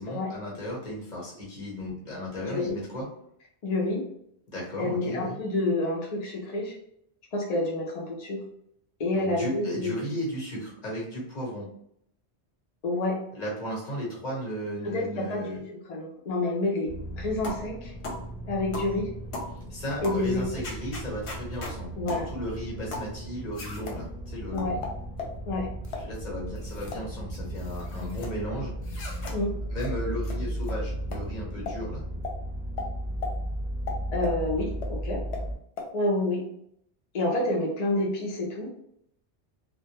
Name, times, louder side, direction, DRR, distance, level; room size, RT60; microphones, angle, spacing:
voice 1, 0.0-3.1 4.5-5.4 9.1-11.7 13.3-15.6 19.7-24.9 25.9-28.7 29.1-29.3 29.7-32.0, equal, 40° left, -4 dB, 1.0 m, -35 dB
voice 2, 2.5-2.8 3.6-4.1 4.8-6.7 7.3-8.4 9.0-10.1 12.8-13.2 14.8-17.9 18.5-19.1 20.0-20.5 22.0-22.3 24.5-24.8 25.5-25.7 29.3-29.6 34.1-35.2 35.9-36.4 37.1-38.7, left 2 dB, 60° left, -2 dB, 0.4 m, -28 dB
sound 1, 16.8-35.6, right 1 dB, 45° right, 0.7 m, -36 dB
sound 2, 17.4-17.7 18.0-18.2 18.7-18.9 19.3-19.5 20.0-20.2 20.6-21.8 22.1-22.3 22.9-23.1 23.5-24.0 24.6-25.4 25.8-26.1 26.6-27.0 27.3-28.3 28.8-29.4 29.8-29.9 30.2-30.4 30.6-30.8 31.1-31.2 31.7-31.8 32.2-32.4 32.8-32.9 33.2-33.3 33.9-34.4 34.8-34.9 35.3-35.4 35.8-35.9, left 3 dB, 80° left, 0.9 m, -37 dB
2.1 x 2.1 x 2.8 m, 0.71 s
omnidirectional pair, 1.1 m